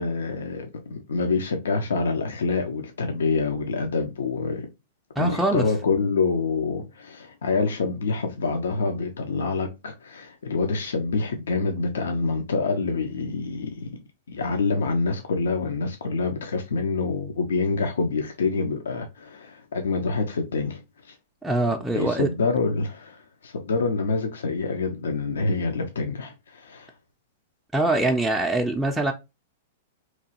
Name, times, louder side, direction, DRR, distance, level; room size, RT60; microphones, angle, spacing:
voice 1, 0.0-4.7 5.2-13.9 14.3-21.2 21.9-26.9, left 4 dB, 80° left, 0.4 m, -26 dB
voice 2, 5.2-5.7 21.4-22.3 27.7-29.1, right 2 dB, 5° right, 0.3 m, -23 dB
2.9 x 2.3 x 2.8 m
hypercardioid pair, 115°, 0 cm